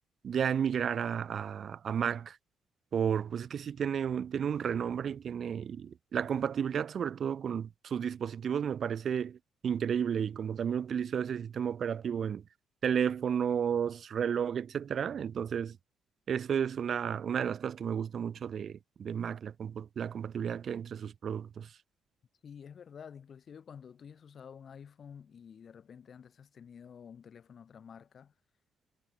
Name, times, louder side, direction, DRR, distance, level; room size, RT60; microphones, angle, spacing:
voice 1, 0.2-2.4 2.9-12.4 12.8-15.8 16.3-21.7, right 8 dB, 55° right, 0.5 m, -32 dB
voice 2, 22.4-28.3, left 7 dB, 50° left, 1.9 m, -50 dB
cardioid pair, 90°, 0 cm